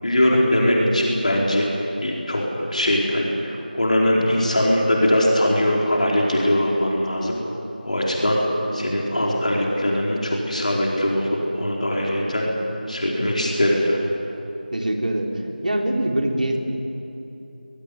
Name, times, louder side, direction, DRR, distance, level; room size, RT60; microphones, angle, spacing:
voice 1, 0.0-2.4 2.7-7.4 7.8-8.4 8.7-12.5 12.9-14.0, left 1 dB, 50° left, -3 dB, 4.7 m, -21 dB
voice 2, 12.0-12.3 13.2-13.5 14.7-15.3 15.6-16.6, right 1 dB, 60° right, 1 dB, 3.7 m, -24 dB
22.0 x 22.0 x 9.8 m, 3.0 s
figure-of-eight pair, 175°, 5 cm